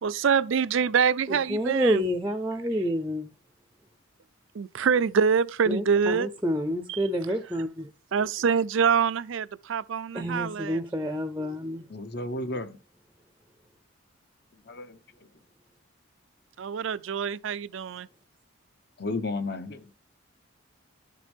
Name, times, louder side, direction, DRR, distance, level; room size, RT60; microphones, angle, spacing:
voice 1, 0.0-2.0 4.5-6.3 6.9-7.0 8.1-10.8 16.6-18.1, right 6 dB, 65° right, 0.4 m, -25 dB
voice 2, 1.3-3.3 5.7-7.9 10.1-11.8, equal, 10° right, 0.6 m, -28 dB
voice 3, 11.9-12.8 14.7-15.0 19.0-19.8, left 2 dB, 50° left, 0.9 m, -32 dB
11.5 x 6.6 x 3.5 m
head